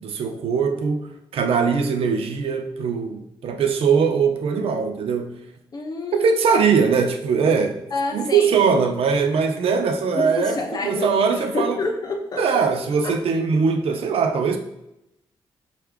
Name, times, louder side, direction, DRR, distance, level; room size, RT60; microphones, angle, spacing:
voice 1, 0.0-5.4 6.1-7.8 8.1-10.6 10.8-11.8 12.4-14.6, right 5 dB, 75° right, 6 dB, 0.6 m, -21 dB
voice 2, 5.7-6.7 7.9-8.6 10.1-12.4 13.0-13.1, left 3 dB, 40° left, 2 dB, 0.9 m, -28 dB
5.6 x 2.5 x 3.4 m, 0.85 s
cardioid pair, 100°, 10 cm